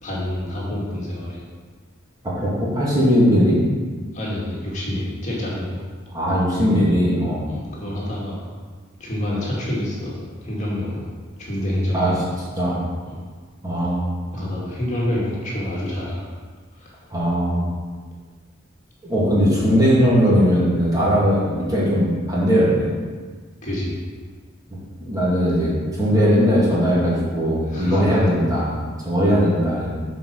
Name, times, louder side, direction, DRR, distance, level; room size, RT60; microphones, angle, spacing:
voice 1, 0.0-1.5 4.1-5.8 7.5-8.4 9.0-10.1 10.4-11.1 11.4-12.1 13.0-13.1 14.3-16.3 16.8-16.9 23.6-24.0 27.7-28.2, left 1 dB, 35° left, -6 dB, 2.3 m, -27 dB
voice 2, 2.4-3.6 6.1-7.5 11.9-12.1 12.6-12.8 13.6-14.1 14.3-14.5 17.1-17.6 19.0-22.9 25.0-30.0, equal, 20° right, -7 dB, 2.4 m, -19 dB
8.7 x 4.9 x 6.5 m, 1.5 s
head